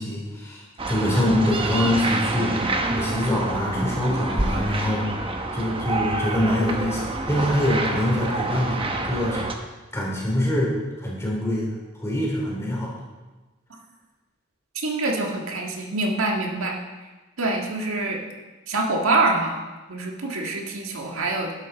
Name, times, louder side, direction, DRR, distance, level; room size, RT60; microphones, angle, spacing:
voice 1, 0.0-5.1 5.5-9.4 9.9-12.9, left 1 dB, 15° left, -4 dB, 3.8 m, -25 dB
sound 1, 0.8-9.5, right 2 dB, 25° right, 1.0 m, -27 dB
voice 2, 14.8-16.8 17.4-18.2 18.7-19.6 19.9-21.5, right 2 dB, 80° right, 0 dB, 1.7 m, -25 dB
12.0 x 11.5 x 4.2 m, 1.2 s
head